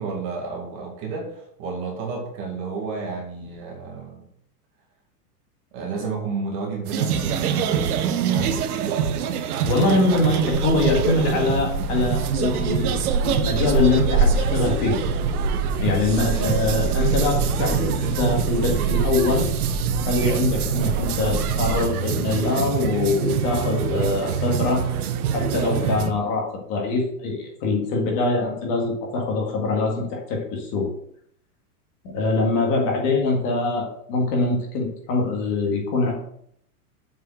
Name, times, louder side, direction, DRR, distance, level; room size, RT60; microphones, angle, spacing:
voice 1, 0.0-4.3 5.7-8.5, right 4 dB, 25° right, 0 dB, 2.0 m, -31 dB
sound 1, 6.9-26.1, right 8 dB, 70° right, 1.1 m, -26 dB
voice 2, 9.7-12.9 13.2-15.0 15.8-19.5 20.1-24.8 25.3-30.9 32.0-36.1, left 3 dB, 30° left, 0 dB, 2.0 m, -23 dB
sound 2, 10.5-21.8, right 4 dB, 45° right, 2.7 m, -26 dB
7.6 x 5.5 x 7.6 m, 0.69 s
supercardioid pair, 180°, 46 cm